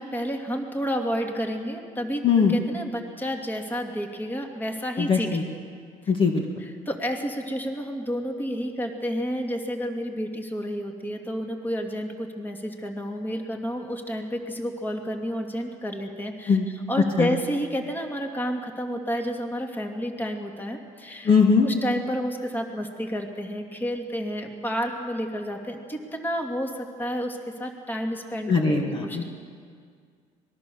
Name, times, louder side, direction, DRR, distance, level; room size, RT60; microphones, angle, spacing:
voice 1, 0.0-5.3 6.6-21.3 21.6-28.5 28.9-29.2, equal, 15° left, 3 dB, 2.4 m, -30 dB
voice 2, 5.0-5.4 6.1-6.4 16.5-16.7 17.2-17.3 21.2-21.7 28.5-29.2, left 5 dB, 35° left, 2 dB, 1.9 m, -20 dB
25.5 x 20.5 x 7.0 m, 2.1 s
cardioid pair, 130°, 15 cm